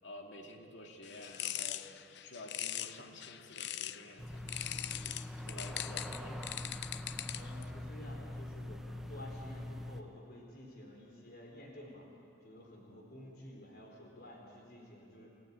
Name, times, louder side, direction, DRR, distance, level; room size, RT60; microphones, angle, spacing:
voice 1, 0.0-1.9 2.2-4.7 5.0-5.1 5.4-6.3, left 1 dB, 85° left, 2 dB, 2.4 m, -51 dB
sound 1, 1.0-4.1 4.5-7.6, left 12 dB, 70° left, 0.6 m, -41 dB
sound 2, 4.2-10.0, left 1 dB, ahead, 0.9 m, -43 dB
voice 2, 6.0-6.4 7.3-12.1 12.4-15.3, left 1 dB, 55° left, 0 dB, 4.1 m, -51 dB
28.0 x 14.5 x 8.8 m, 2.6 s
head